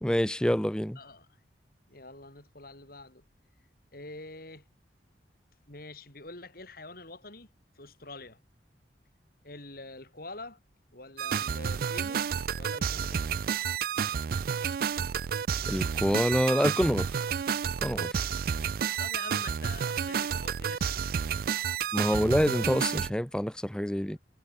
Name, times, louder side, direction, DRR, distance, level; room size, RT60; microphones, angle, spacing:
voice 1, 0.0-1.0 15.7-17.2 17.8-18.3 21.9-24.2, equal, 5° left, 0.7 m, -27 dB
voice 2, 1.0-1.3 1.9-3.2 3.9-4.6 5.7-7.5 7.7-8.4 9.4-10.6 10.9-12.3 12.6-13.3 18.2-18.7 19.0-21.1 22.1-22.3, left 2 dB, 55° left, 6.6 m, -46 dB
sound 1, 11.2-23.1, right 7 dB, 55° right, 0.4 m, -30 dB
head